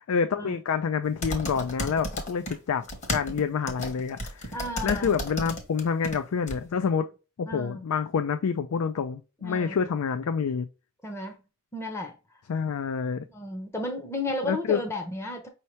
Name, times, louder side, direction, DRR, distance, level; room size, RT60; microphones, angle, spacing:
voice 1, 0.1-2.8 3.1-4.5 4.8-7.1 7.4-10.7 12.5-13.3 14.4-14.8, left 6 dB, 80° left, 0.4 m, -27 dB
sound 1, 1.2-2.6 2.8-6.2 6.5-6.6, left 1 dB, 35° left, 1.2 m, -33 dB
voice 2, 4.5-5.2 7.5-7.9 9.4-9.7 11.0-11.4 11.7-12.1 13.3-15.5, left 1 dB, 10° left, 0.7 m, -33 dB
5.5 x 2.9 x 3.1 m
head